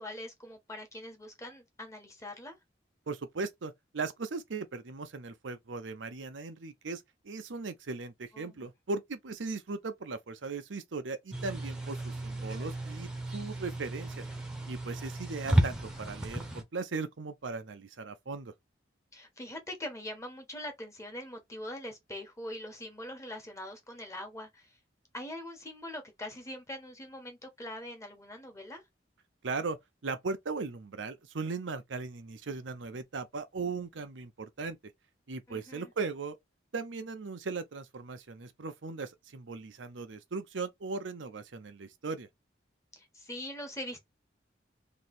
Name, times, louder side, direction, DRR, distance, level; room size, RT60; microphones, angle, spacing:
voice 1, 0.0-2.6 8.3-8.7 19.1-24.7 25.1-28.8 35.5-35.9 43.0-44.0, left 1 dB, 15° left, 1.2 m, -43 dB
voice 2, 3.1-14.2 14.7-18.5 29.4-29.8 30.0-34.8 35.3-36.4 36.7-42.3, right 4 dB, 85° right, 0.7 m, -38 dB
sound 1, 11.3-16.6, right 1 dB, 5° right, 0.9 m, -33 dB
3.2 x 2.8 x 4.2 m
head